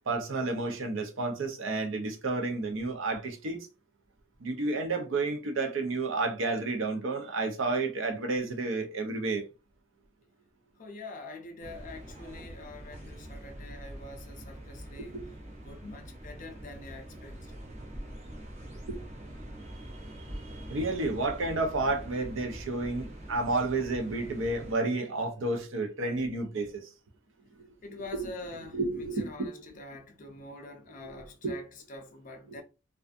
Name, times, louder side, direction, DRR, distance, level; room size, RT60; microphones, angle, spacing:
voice 1, 0.1-3.7 4.4-9.4 15.0-15.3 18.9-19.0 20.7-26.9 28.1-28.3 28.7-29.5 31.0-31.1 31.4-31.5, right 3 dB, 70° right, 0.6 m, -31 dB
voice 2, 10.8-15.2 15.6-17.5 27.8-32.6, left 2 dB, 40° left, 0.5 m, -45 dB
sound 1, 11.6-24.7, right 1 dB, 35° right, 0.7 m, -44 dB
2.5 x 2.3 x 2.4 m
head